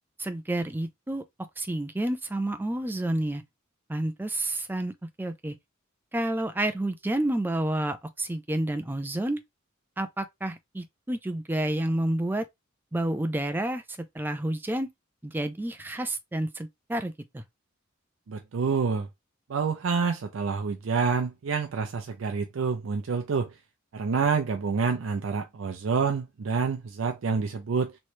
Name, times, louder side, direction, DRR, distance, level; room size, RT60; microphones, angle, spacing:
voice 1, 0.2-1.2 1.6-3.4 3.9-5.5 6.1-9.4 10.0-12.5 12.9-13.8 14.1-14.9 15.2-17.4, right 1 dB, 10° right, 0.4 m, -29 dB
voice 2, 18.3-19.1 19.5-23.5 23.9-28.0, right 5 dB, 80° right, 0.5 m, -27 dB
3.1 x 3.1 x 2.6 m
head